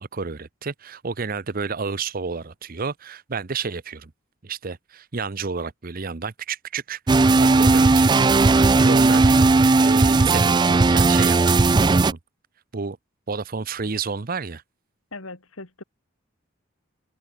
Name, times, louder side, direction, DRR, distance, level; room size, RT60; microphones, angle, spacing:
voice 1, 0.0-4.1 4.4-7.0 7.4-12.2 12.7-13.0 13.3-14.6, right 5 dB, 45° right, 0.7 m, -31 dB
sound 1, 7.1-12.1, right 3 dB, 20° right, 0.3 m, -16 dB
voice 2, 15.1-15.8, left 2 dB, 85° left, 3.6 m, -39 dB
open air
head